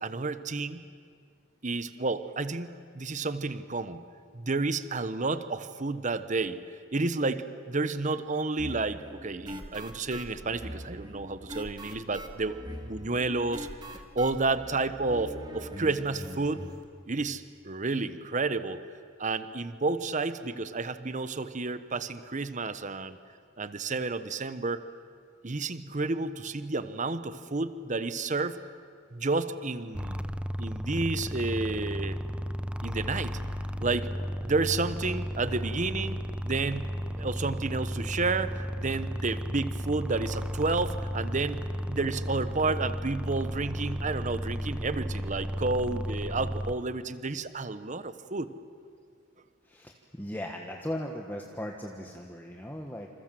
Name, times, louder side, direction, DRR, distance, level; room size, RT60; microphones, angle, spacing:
voice 1, 0.0-0.8 1.6-4.0 4.3-6.6 6.9-13.7 14.1-16.7 17.1-18.8 19.2-23.2 23.6-24.8 25.4-28.6 29.1-30.2 30.6-32.2 32.8-33.4 33.8-34.1 34.4-48.5, right 3 dB, 40° right, 12 dB, 1.0 m, -31 dB
sound 1, 8.6-16.8, equal, 20° right, 2.1 m, -42 dB
sound 2, 29.9-46.7, equal, 5° right, 0.7 m, -34 dB
voice 2, 49.6-53.1, left 1 dB, 10° left, 1 dB, 1.5 m, -38 dB
27.5 x 27.5 x 7.7 m, 2.2 s
head